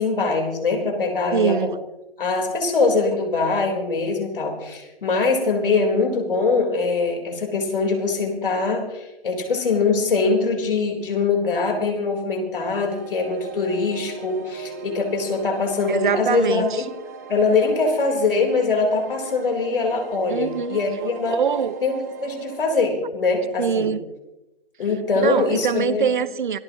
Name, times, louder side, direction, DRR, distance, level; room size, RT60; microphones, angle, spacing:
voice 1, 0.0-1.7 2.2-16.8 17.3-21.4 21.8-23.9 24.8-26.1, left 4 dB, 65° left, 2 dB, 4.1 m, -22 dB
voice 2, 1.3-1.8 15.9-16.8 20.3-20.8 21.3-21.8 23.6-24.0 25.1-26.6, right 7 dB, 55° right, 14 dB, 1.0 m, -23 dB
sound 1, 12.7-22.8, right 6 dB, 20° right, 0.8 m, -40 dB
26.0 x 14.5 x 3.0 m, 0.98 s
hypercardioid pair, 170°, 30 cm